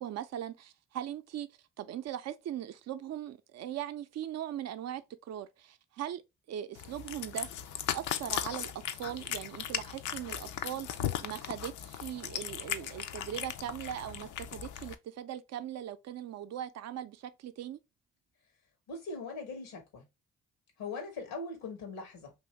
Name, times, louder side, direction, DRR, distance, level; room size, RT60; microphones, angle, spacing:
voice 1, 0.0-1.5 1.8-6.2 6.5-17.8, right 11 dB, 55° right, 0.5 m, -40 dB
Cat, 6.8-14.9, left 10 dB, 65° left, 0.5 m, -37 dB
voice 2, 18.9-20.0 20.8-22.3, left 3 dB, 90° left, 1.1 m, -40 dB
2.7 x 2.6 x 3.2 m
supercardioid pair, 50°, 32 cm